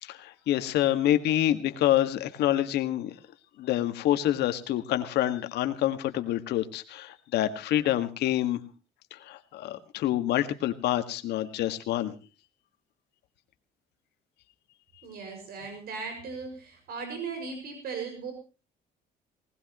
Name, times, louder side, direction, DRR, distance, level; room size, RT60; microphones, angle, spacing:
voice 1, 0.0-3.1 3.6-8.6 9.1-12.1, left 13 dB, 80° left, 9 dB, 1.8 m, -27 dB
voice 2, 15.0-18.3, right 5 dB, 65° right, 5 dB, 6.1 m, -37 dB
20.5 x 19.0 x 3.0 m, 0.33 s
cardioid pair, 110°, 17 cm